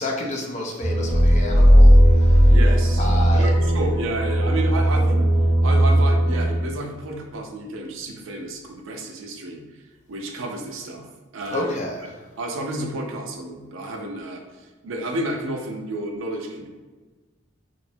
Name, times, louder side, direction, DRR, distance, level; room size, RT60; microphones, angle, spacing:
voice 1, 0.0-2.5 3.0-3.5 11.5-12.2, left 1 dB, 35° left, 0 dB, 0.4 m, -30 dB
sound 1, 0.8-6.5, right 1 dB, 5° right, 0.9 m, -20 dB
sound 2, 1.1-3.9, equal, 65° left, 0.7 m, -15 dB
voice 2, 2.5-5.2 5.6-9.6 10.1-11.1 11.3-11.8 12.4-14.4 14.8-16.7, right 1 dB, 70° right, 2 dB, 0.4 m, -31 dB
2.9 x 2.1 x 2.6 m, 1.3 s
head